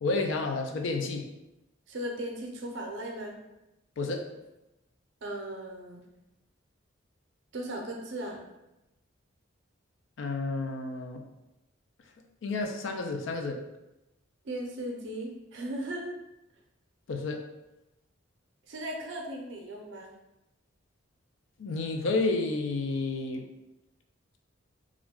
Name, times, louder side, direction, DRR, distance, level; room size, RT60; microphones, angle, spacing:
voice 1, 0.0-1.2 4.0-4.2 10.2-11.2 12.4-13.6 17.1-17.4 21.6-23.5, left 3 dB, 70° left, 4 dB, 0.4 m, -30 dB
voice 2, 1.9-3.4 5.2-6.1 7.5-8.4 14.4-16.2 18.7-20.1, right 1 dB, 65° right, 1 dB, 0.5 m, -37 dB
2.4 x 2.1 x 3.5 m, 0.95 s
head